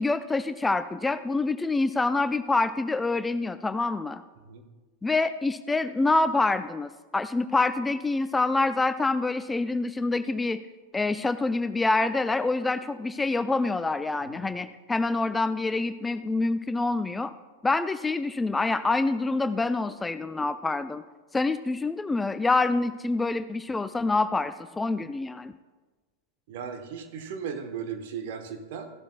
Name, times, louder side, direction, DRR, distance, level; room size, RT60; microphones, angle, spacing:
voice 1, 0.0-4.2 5.0-10.6 10.9-17.3 17.6-21.0 21.3-25.5, left 3 dB, 10° left, 12 dB, 0.3 m, -26 dB
voice 2, 26.5-28.9, right 7 dB, 50° right, 6 dB, 1.2 m, -36 dB
15.5 x 12.0 x 2.3 m, 1.3 s
figure-of-eight pair, 90°, 0 cm